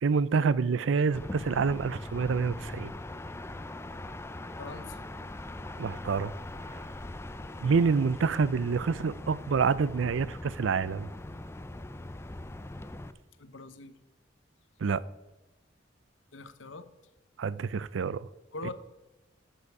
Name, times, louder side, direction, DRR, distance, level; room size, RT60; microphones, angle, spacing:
voice 1, 0.0-2.9 5.8-6.3 6.7-6.8 7.6-11.1 14.8-15.0 17.4-18.2, right 5 dB, 75° right, 0.4 m, -27 dB
sound 1, 1.1-13.1, left 1 dB, 15° left, 0.5 m, -41 dB
voice 2, 4.6-5.0 13.4-14.0 16.3-16.9 18.5-18.7, left 3 dB, 75° left, 0.9 m, -42 dB
13.5 x 7.8 x 4.8 m
head